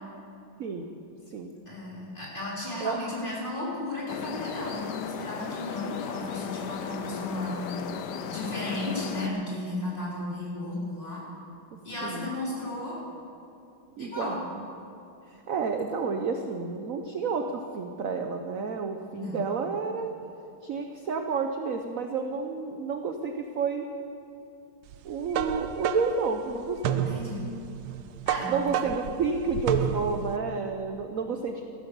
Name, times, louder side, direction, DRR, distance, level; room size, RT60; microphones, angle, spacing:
voice 1, 1.7-7.6 8.3-11.2 11.8-13.0 14.0-14.4 19.1-19.4 26.9-27.4 28.2-28.5, left 2 dB, 25° left, -6 dB, 4.2 m, -34 dB
sound 1, 4.1-9.3, left 7 dB, 65° left, 1.2 m, -36 dB
voice 2, 12.0-12.3 14.0-14.6 15.5-20.1 20.6-23.9 25.0-27.0 28.5-31.7, right 5 dB, 60° right, 5 dB, 0.9 m, -30 dB
sound 2, 24.9-30.4, right 10 dB, 80° right, 1.5 m, -31 dB
15.0 x 12.0 x 6.9 m, 2.7 s
omnidirectional pair, 2.3 m